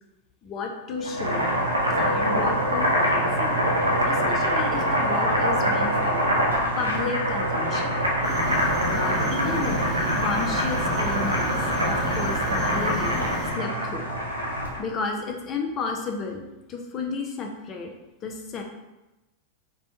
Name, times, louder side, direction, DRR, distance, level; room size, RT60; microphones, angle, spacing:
voice 1, 0.4-1.4 1.9-3.6 4.1-6.3 6.8-7.9 8.9-11.6 11.9-13.2 13.5-14.1 14.8-16.4 16.7-17.9 18.2-18.6, left 4 dB, 30° left, 3 dB, 0.5 m, -32 dB
sound 1, 0.9-10.3, equal, 85° left, 0.6 m, -35 dB
Boiling, 1.0-14.8, equal, 80° right, 0.5 m, -24 dB
sound 2, 8.2-13.5, equal, 15° right, 0.9 m, -32 dB
4.2 x 2.2 x 2.7 m, 1.0 s
figure-of-eight pair, 90°, 0 cm